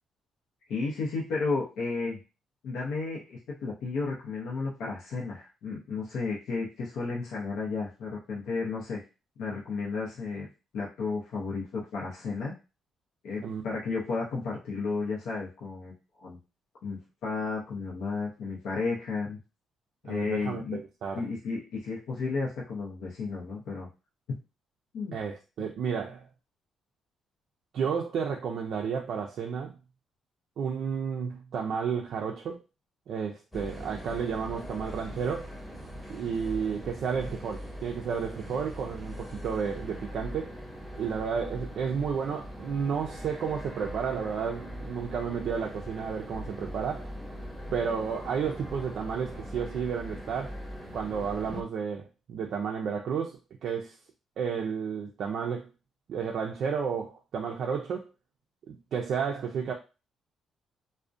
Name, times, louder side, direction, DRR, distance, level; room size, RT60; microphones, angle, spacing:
voice 1, 0.7-2.2 2.6-9.0 9.4-10.5 10.7-12.5 13.2-16.4 16.8-19.4 20.0-20.8 21.1-23.9 24.3-24.4 24.9-25.2, left 4 dB, 80° left, 0.6 m, -33 dB
voice 2, 20.1-21.3 25.1-26.2 27.7-29.8 30.6-32.6 33.1-35.5 36.1-40.5 41.0-47.1 47.7-50.5 50.9-54.0 54.4-55.7 56.1-58.0 58.7-59.7, right 6 dB, 70° right, 0.3 m, -32 dB
sound 1, 33.5-51.6, equal, 5° left, 0.8 m, -41 dB
2.4 x 2.1 x 2.5 m
cardioid pair, 90°, 0 cm